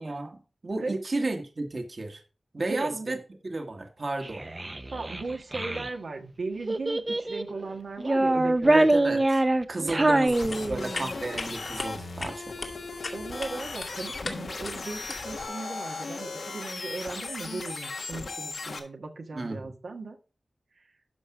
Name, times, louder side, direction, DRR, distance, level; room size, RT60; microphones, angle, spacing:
voice 1, 0.0-2.2 2.5-3.2 3.4-4.4 8.7-9.4 9.7-12.5 19.3-19.7, right 2 dB, 50° right, 4 dB, 1.6 m, -33 dB
voice 2, 2.7-3.1 4.9-8.7 9.8-10.2 13.1-20.2, right 3 dB, 80° right, 2 dB, 1.6 m, -37 dB
Child speech kid speaking, 4.2-5.9 6.7-7.5 8.0-11.1, right 2 dB, 25° right, 0.7 m, -24 dB
sound 1, 10.3-18.8, left 3 dB, 85° left, 1.8 m, -37 dB
sound 2, 10.3-15.5, left 3 dB, 60° left, 2.0 m, -40 dB
12.0 x 5.4 x 4.7 m, 0.35 s
wide cardioid pair, 85°, 0 cm